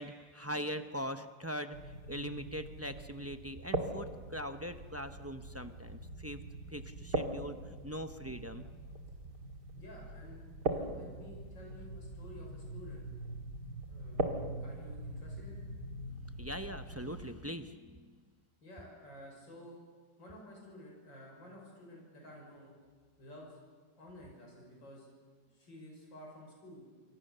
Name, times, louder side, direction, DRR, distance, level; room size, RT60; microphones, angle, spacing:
voice 1, 0.0-6.4 6.7-8.7 16.4-18.1, equal, 20° right, 8 dB, 0.4 m, -41 dB
sound 1, 1.7-17.3, right 2 dB, 65° right, 2.7 m, -41 dB
voice 2, 9.7-13.1 13.9-15.6 18.6-19.8 20.2-22.7 23.2-23.6 24.0-25.1 25.5-26.8, left 1 dB, 90° left, -1 dB, 7.0 m, -52 dB
29.0 x 25.0 x 6.8 m, 1.5 s
omnidirectional pair, 2.0 m